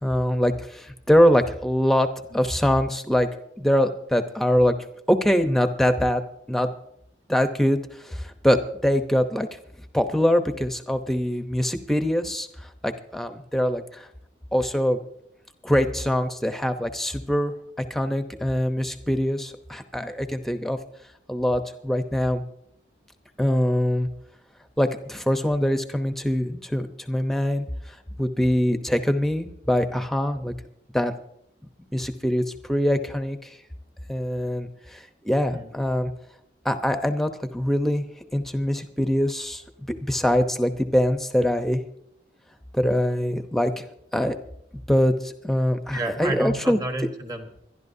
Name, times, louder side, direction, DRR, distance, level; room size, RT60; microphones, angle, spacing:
voice 1, 0.0-2.1 2.3-3.3 3.6-4.7 5.1-6.2 6.5-6.7 7.3-7.8 8.0-9.5 9.9-12.5 12.8-14.1 14.5-15.0 15.6-17.5 17.9-20.8 21.3-22.4 23.4-24.1 24.8-27.6 28.2-30.5 30.9-31.1 31.9-32.4 32.7-33.5 34.1-36.1 36.6-38.0 38.3-39.6 40.1-41.8 42.7-43.8 44.1-44.4 44.9-46.8, equal, ahead, 7 dB, 0.8 m, -23 dB
voice 2, 45.9-47.6, right 2 dB, 20° right, 5 dB, 1.3 m, -31 dB
25.0 x 11.5 x 2.7 m, 0.74 s
head